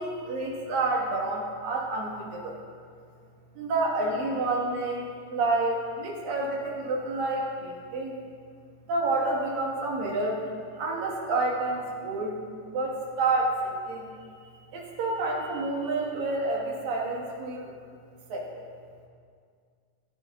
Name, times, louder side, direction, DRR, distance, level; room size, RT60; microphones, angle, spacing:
voice 1, 0.0-2.6 3.5-8.2 8.9-10.4 10.8-14.3 14.7-17.7 18.3-18.6, right 2 dB, 60° right, -2 dB, 3.0 m, -29 dB
13.0 x 12.5 x 3.8 m, 2.1 s
omnidirectional pair, 5.0 m